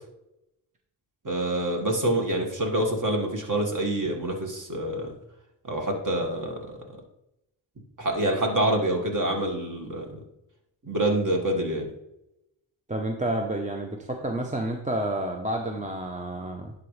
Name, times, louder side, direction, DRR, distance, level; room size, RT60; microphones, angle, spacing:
voice 1, 1.2-5.1 5.6-6.8 8.0-10.2 10.8-11.8, right 1 dB, 40° right, 2 dB, 1.9 m, -26 dB
voice 2, 12.9-16.7, right 1 dB, 15° right, 3 dB, 0.8 m, -30 dB
10.5 x 4.0 x 3.3 m, 0.85 s
cardioid pair, 55°, 49 cm